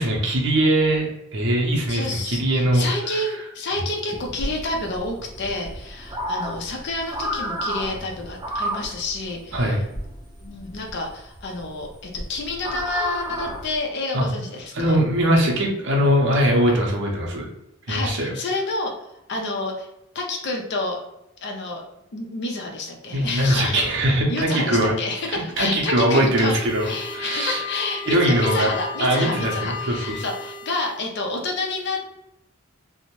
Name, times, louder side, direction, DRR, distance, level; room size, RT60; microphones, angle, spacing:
voice 1, 0.0-2.8 3.1-3.3 9.5-9.8 14.1-14.3 14.7-17.5 17.9-18.3 23.1-24.9 25.3-26.9 27.1-27.6 28.1-28.7 29.0-30.2, right 1 dB, 55° right, 0 dB, 0.6 m, -21 dB
voice 2, 1.9-9.7 10.4-15.0 17.9-19.9 20.1-21.0 21.4-21.8 22.1-23.9 24.3-26.5 26.8-32.1, left 2 dB, 55° left, 1 dB, 0.4 m, -29 dB
sound 1, 4.1-13.8, equal, 20° right, 0.3 m, -32 dB
sound 2, 26.2-31.1, left 5 dB, 25° left, 0.7 m, -34 dB
2.6 x 2.0 x 2.9 m, 0.86 s
head